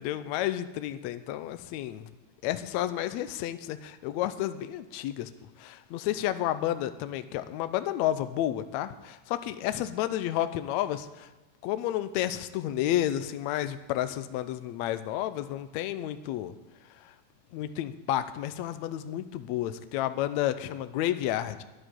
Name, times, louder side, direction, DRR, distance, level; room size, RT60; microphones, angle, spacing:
voice 1, 0.0-2.1 2.4-5.3 5.6-11.3 11.6-16.5 17.0-17.1 17.5-21.6, left 12 dB, 80° left, 12 dB, 1.7 m, -31 dB
11.0 x 7.9 x 10.0 m, 1.1 s
omnidirectional pair, 3.7 m